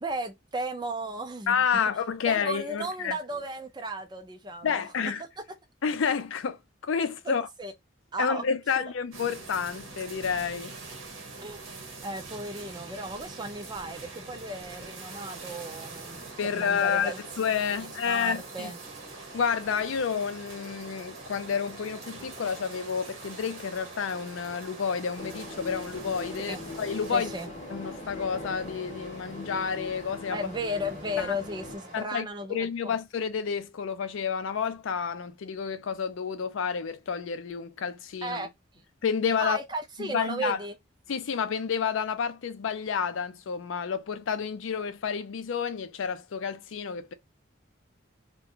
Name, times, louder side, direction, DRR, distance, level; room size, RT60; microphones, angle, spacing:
voice 1, 0.0-1.8 2.3-4.8 7.2-7.7 8.1-8.4 8.8-8.9 11.4-11.6 12.0-16.2 16.5-17.2 17.8-18.8 26.5-26.6 27.1-27.5 30.3-33.0 38.2-38.5 39.4-40.7, right 1 dB, 20° right, 0.4 m, -35 dB
voice 2, 1.5-3.2 4.6-5.2 5.8-7.5 8.2-10.8 16.4-18.7 19.3-27.3 27.7-30.4 31.2-31.3 31.9-38.5 39.0-39.6 40.0-40.6 41.1-47.1, left 6 dB, 80° left, 0.4 m, -30 dB
sound 1, 9.1-27.5, right 3 dB, 85° right, 0.8 m, -44 dB
Stream, 15.0-32.0, right 2 dB, 40° right, 0.9 m, -48 dB
sound 2, 25.2-31.8, left 2 dB, 35° left, 0.6 m, -41 dB
2.4 x 2.1 x 2.8 m
head